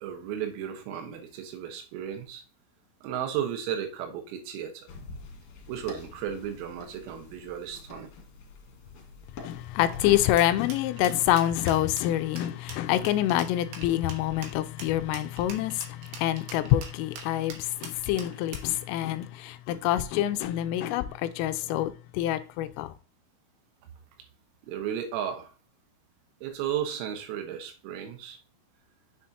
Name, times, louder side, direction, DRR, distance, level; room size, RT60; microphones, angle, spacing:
voice 1, 0.0-2.4 3.0-4.9 5.7-8.1 24.6-25.5 26.4-28.4, right 9 dB, 90° right, 4.0 m, -34 dB
sound 1, 4.9-10.4, left 3 dB, 60° left, 2.5 m, -45 dB
voice 2, 9.4-22.9, left 13 dB, 85° left, 3.1 m, -26 dB
sound 2, 10.4-18.7, right 5 dB, 70° right, 2.8 m, -43 dB
7.5 x 7.3 x 2.8 m
omnidirectional pair, 6.0 m